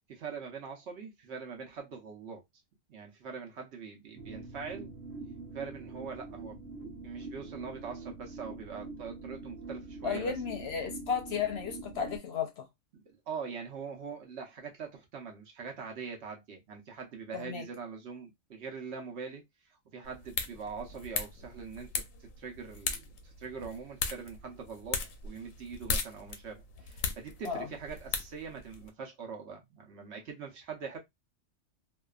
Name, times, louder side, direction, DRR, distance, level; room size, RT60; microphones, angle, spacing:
voice 1, 0.2-2.4 2.9-4.9 5.5-6.6 7.0-10.3 12.9-19.4 19.9-31.0, right 5 dB, 65° right, 1.0 m, -43 dB
sound 1, 4.2-12.2, right 3 dB, 80° right, 1.1 m, -44 dB
voice 2, 10.0-12.7 17.3-17.6 27.4-27.7, left 6 dB, 60° left, 0.8 m, -34 dB
sound 2, 20.0-28.9, left 5 dB, 90° left, 1.0 m, -38 dB
2.7 x 2.3 x 2.3 m
omnidirectional pair, 1.3 m